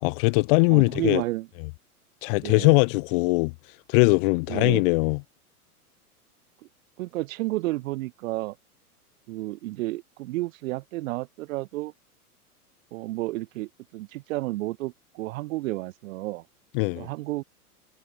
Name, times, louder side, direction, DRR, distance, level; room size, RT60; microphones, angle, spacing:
voice 1, 0.0-1.2 2.2-3.5 3.9-5.2 16.7-17.1, left 30 dB, 40° left, 0.5 m, -21 dB
voice 2, 0.7-1.5 2.4-2.8 4.5-4.8 7.0-8.6 9.3-11.9 12.9-16.5 16.9-17.4, right 19 dB, 60° right, 3.0 m, -31 dB
hypercardioid pair, 105°, 46 cm